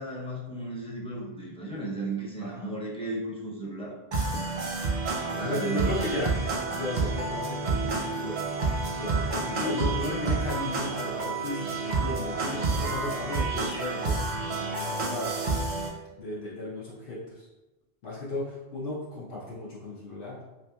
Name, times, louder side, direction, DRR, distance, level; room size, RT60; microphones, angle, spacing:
voice 1, 0.0-4.0 5.3-6.0 9.5-9.9 12.4-12.7, right 1 dB, 10° left, -5 dB, 0.3 m, -34 dB
voice 2, 2.4-2.7 5.3-8.4 9.0-15.4 15.8-17.5 18.0-20.4, left 1 dB, 75° left, -6 dB, 0.9 m, -35 dB
sound 1, 4.1-15.9, right 3 dB, 55° right, 0.6 m, -29 dB
3.3 x 2.7 x 2.2 m, 1.1 s
omnidirectional pair, 1.1 m